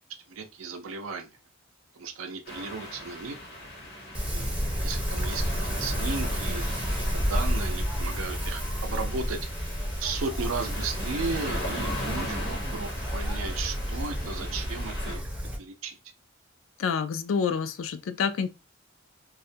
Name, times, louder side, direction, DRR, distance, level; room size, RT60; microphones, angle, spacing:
voice 1, 0.3-1.3 1.9-3.4 4.2-6.7 7.1-9.4 10.0-15.2 15.6-16.0, right 4 dB, 90° right, 0.5 m, -35 dB
sound 1, 2.5-15.2, left 1 dB, 50° left, 0.7 m, -39 dB
Wind, 4.1-15.6, equal, 5° right, 0.5 m, -31 dB
voice 2, 16.8-18.5, left 6 dB, 80° left, 0.3 m, -28 dB
2.3 x 2.1 x 2.6 m
head